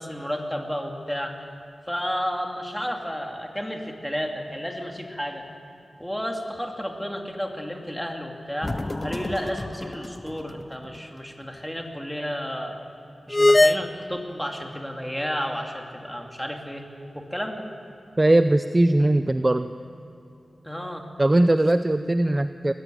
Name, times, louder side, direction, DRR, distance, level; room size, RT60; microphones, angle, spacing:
voice 1, 0.0-1.4 1.9-5.4 6.0-8.7 9.0-12.8 13.3-16.8 17.1-17.7 20.6-21.0, equal, 5° left, 2 dB, 2.5 m, -32 dB
sound 1, 8.6-10.3 10.6-10.7 13.3-13.8, left 2 dB, 25° left, 0.4 m, -22 dB
voice 2, 18.2-19.7 21.2-22.7, right 1 dB, 25° right, 10 dB, 0.5 m, -20 dB
21.0 x 15.0 x 9.2 m, 2.7 s
wide cardioid pair, 85°, 0 cm